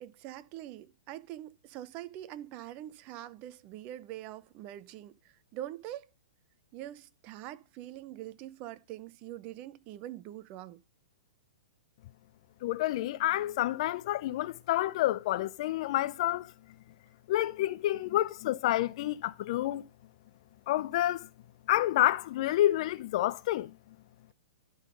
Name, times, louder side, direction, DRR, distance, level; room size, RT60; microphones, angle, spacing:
voice 1, 0.0-5.1 5.5-6.1 6.7-10.8, right 13 dB, 35° right, 0.6 m, -44 dB
voice 2, 12.6-16.5 17.3-19.8 20.7-21.3 21.7-23.7, left 14 dB, 50° left, 0.4 m, -29 dB
11.5 x 3.9 x 5.1 m
hypercardioid pair, 125°, 4 cm